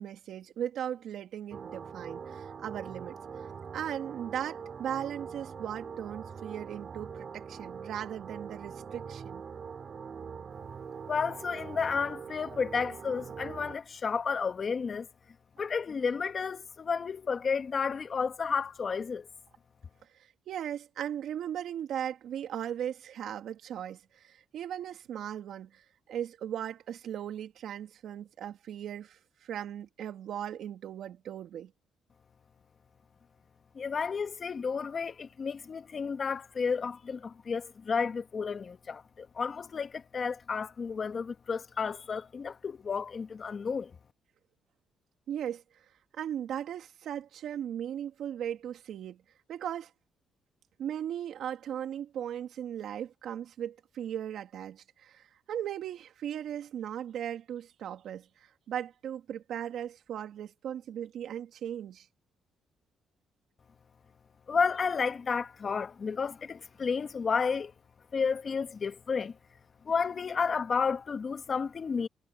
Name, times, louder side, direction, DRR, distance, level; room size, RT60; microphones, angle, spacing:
voice 1, 0.0-3.5 3.7-9.4 20.1-31.7 45.3-45.6 46.1-49.2 49.5-49.9 50.8-62.1, right 10 dB, 75° right, 2.5 m, -38 dB
sound 1, 1.5-13.8, right 6 dB, 45° right, 4.5 m, -43 dB
voice 2, 11.1-15.1 15.6-19.3 33.7-43.9 64.5-67.7 68.1-69.3 69.8-72.1, left 5 dB, 40° left, 1.7 m, -32 dB
cardioid pair, 90°, 0 cm